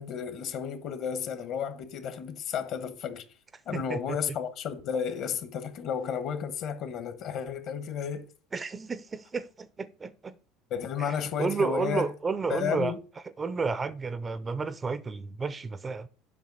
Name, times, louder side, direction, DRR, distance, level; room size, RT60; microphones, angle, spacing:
voice 1, 0.0-3.2 3.6-8.3 10.7-12.1 12.5-13.0, left 7 dB, 55° left, 1.1 m, -32 dB
voice 2, 3.7-4.2 8.5-10.3 11.0-12.9 13.4-16.1, right 4 dB, 20° right, 0.4 m, -31 dB
7.4 x 5.3 x 4.0 m
supercardioid pair, 120°, 0 cm